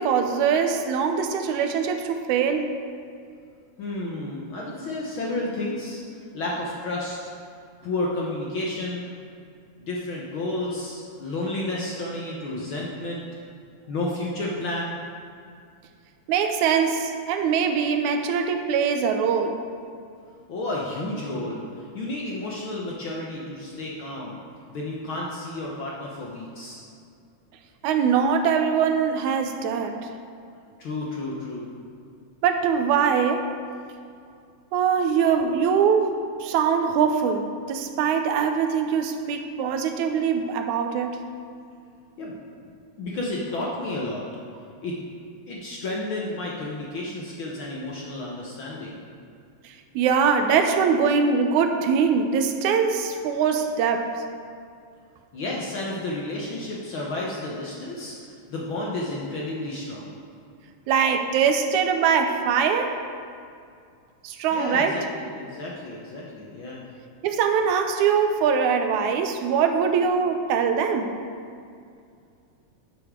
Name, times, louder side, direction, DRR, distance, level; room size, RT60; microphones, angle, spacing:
voice 1, 0.0-2.7 16.3-19.6 27.8-30.0 32.4-33.5 34.7-36.1 36.4-41.2 50.0-54.1 60.9-63.0 64.2-65.0 67.2-71.1, right 6 dB, 80° right, 5 dB, 2.1 m, -22 dB
voice 2, 3.8-6.0 6.3-7.2 7.8-9.1 9.8-13.2 13.9-15.0 20.5-24.4 24.7-26.8 30.8-31.7 42.2-42.4 43.0-44.2 44.8-44.9 45.5-49.0 55.3-60.1 64.5-66.8, left 2 dB, 60° left, -3 dB, 1.4 m, -31 dB
11.5 x 8.3 x 3.7 m, 2.3 s
omnidirectional pair, 3.4 m